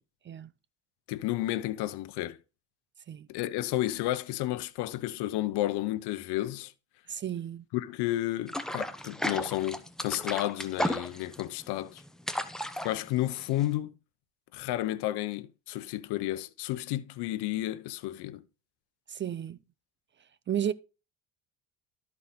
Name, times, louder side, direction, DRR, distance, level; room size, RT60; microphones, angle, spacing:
voice 1, 1.1-2.4 3.3-6.7 7.7-12.0 12.8-13.9 14.5-18.4, left 15 dB, 75° left, 0.9 m, -32 dB
voice 2, 7.1-7.6 19.1-19.6 20.5-20.7, right 9 dB, 30° right, 0.4 m, -32 dB
sound 1, 8.5-13.7, equal, ahead, 0.9 m, -34 dB
12.5 x 4.8 x 4.1 m
supercardioid pair, 95°, 41 cm